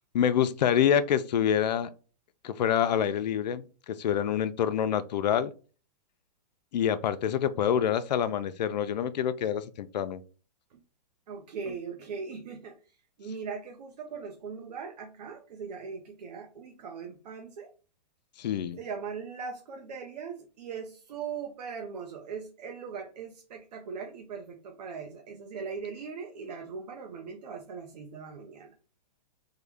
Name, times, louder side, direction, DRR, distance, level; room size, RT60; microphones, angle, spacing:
voice 1, 0.1-1.9 2.4-5.5 6.7-10.2 18.4-18.8, left 9 dB, 85° left, 0.5 m, -26 dB
voice 2, 11.3-17.7 18.8-28.7, right 5 dB, 75° right, 0.8 m, -40 dB
3.7 x 2.2 x 3.4 m
hypercardioid pair, 160°, 21 cm